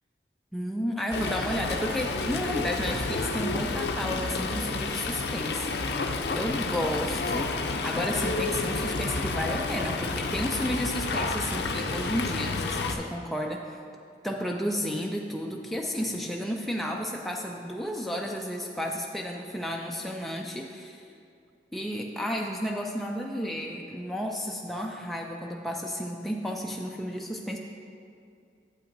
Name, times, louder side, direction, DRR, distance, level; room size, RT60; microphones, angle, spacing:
voice 1, 0.5-13.6 14.2-21.0 21.7-27.6, equal, ahead, 0 dB, 0.3 m, -32 dB
Fowl, 1.1-13.0, left 3 dB, 70° left, 0.4 m, -30 dB
8.6 x 7.8 x 2.6 m, 2.4 s
head